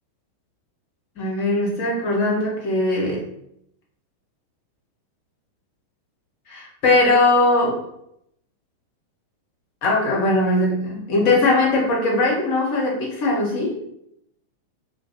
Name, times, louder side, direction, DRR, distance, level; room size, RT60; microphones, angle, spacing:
voice 1, 1.2-3.3 6.5-7.8 9.8-13.7, left 2 dB, 45° left, -3 dB, 0.9 m, -20 dB
2.4 x 2.2 x 2.8 m, 0.76 s
figure-of-eight pair, 90°, 0 cm